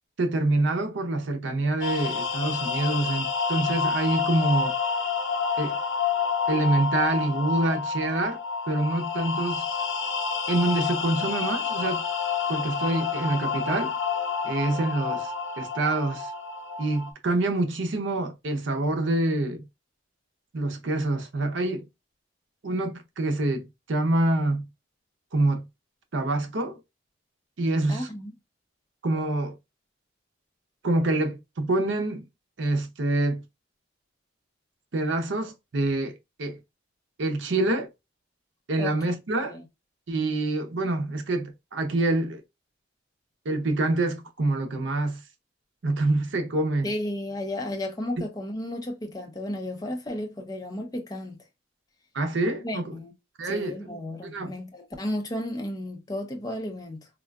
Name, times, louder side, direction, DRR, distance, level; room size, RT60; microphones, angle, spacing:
voice 1, 0.2-4.7 5.6-5.8 6.5-8.4 8.7-9.6 10.5-12.0 12.5-13.9 14.4-16.3 16.8-19.6 20.5-21.8 22.6-24.6 25.3-25.7 26.1-26.8 27.6-28.1 29.0-29.5 30.8-32.2 32.6-33.4 34.9-36.1 36.4-36.6 37.2-37.9 38.7-39.6 40.1-42.4 43.5-45.2 45.8-46.9 52.1-53.0 53.4-53.8 54.2-54.5, right 2 dB, 75° right, 0.6 m, -26 dB
sound 1, 1.8-17.1, left 5 dB, 80° left, 0.7 m, -29 dB
voice 2, 27.9-28.3 38.8-38.9 39.5-39.6 46.8-51.4 52.6-53.1 53.4-57.1, left 1 dB, 20° left, 0.5 m, -33 dB
3.6 x 2.3 x 2.2 m
head